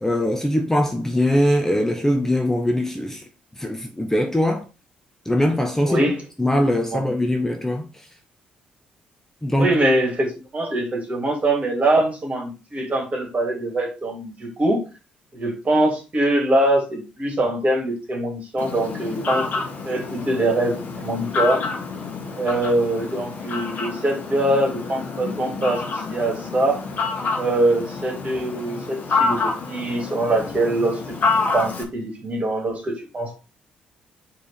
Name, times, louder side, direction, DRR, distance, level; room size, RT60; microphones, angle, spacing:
voice 1, 0.0-3.2 3.6-4.6 5.2-6.0 6.4-8.1 9.4-9.7, left 1 dB, 10° left, 1.0 m, -21 dB
voice 2, 5.8-6.2 6.9-7.0 9.6-14.8 15.3-19.4 19.8-21.6 22.3-26.8 27.3-31.0 31.4-33.4, right 1 dB, 35° right, 3.2 m, -23 dB
Fowl, 18.6-31.8, left 4 dB, 45° left, 1.7 m, -28 dB
4.7 x 4.6 x 5.1 m
figure-of-eight pair, 45°, 4 cm